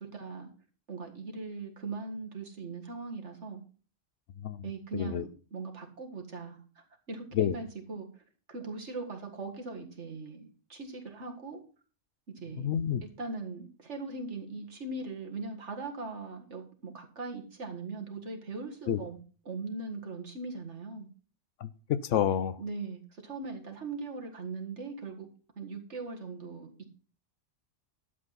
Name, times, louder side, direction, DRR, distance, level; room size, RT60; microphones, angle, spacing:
voice 1, 0.1-0.5 0.9-3.6 4.6-8.2 8.5-11.6 12.4-12.7 13.2-19.2 19.4-21.1 22.6-25.3 25.6-26.9, right 3 dB, 70° right, 3 dB, 2.1 m, -40 dB
voice 2, 12.6-13.0 18.9-19.0 21.6-22.6, left 9 dB, 80° left, 16 dB, 1.0 m, -28 dB
12.0 x 7.7 x 4.1 m, 0.38 s
omnidirectional pair, 1.3 m